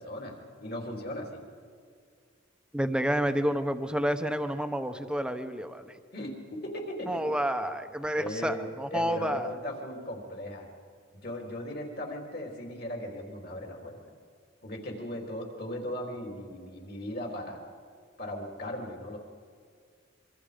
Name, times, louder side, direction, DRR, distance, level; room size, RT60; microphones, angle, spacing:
voice 1, 0.0-1.4 6.1-7.3 8.2-10.7 11.1-14.0 14.6-17.6 18.2-19.2, left 1 dB, 50° left, 1 dB, 3.6 m, -38 dB
voice 2, 2.7-6.0 7.1-9.6, equal, 5° right, 7 dB, 1.0 m, -29 dB
26.5 x 24.0 x 5.2 m, 2.1 s
head